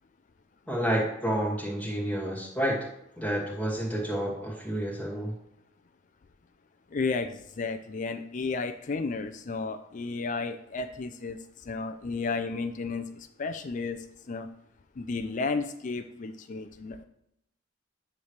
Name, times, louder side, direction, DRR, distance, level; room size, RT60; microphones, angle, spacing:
voice 1, 0.7-2.9 3.2-5.3, right 1 dB, 5° left, -6 dB, 2.4 m, -29 dB
voice 2, 6.9-11.4 11.7-14.0 14.3-14.5 15.0-17.0, left 4 dB, 40° left, 7 dB, 0.4 m, -33 dB
9.7 x 3.3 x 6.5 m, 0.81 s
head